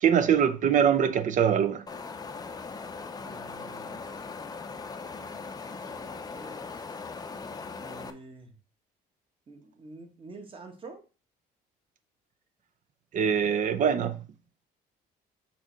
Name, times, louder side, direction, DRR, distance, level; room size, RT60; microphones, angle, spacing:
voice 1, 0.0-1.8 13.1-14.2, right 8 dB, 50° right, 0.8 m, -23 dB
Wind, 1.9-8.1, left 4 dB, 25° left, 0.6 m, -39 dB
voice 2, 3.2-4.0 5.2-6.6 7.8-8.5 9.5-11.0, right 3 dB, 30° right, 1.5 m, -48 dB
6.0 x 3.3 x 5.1 m
cardioid pair, 110°, 17 cm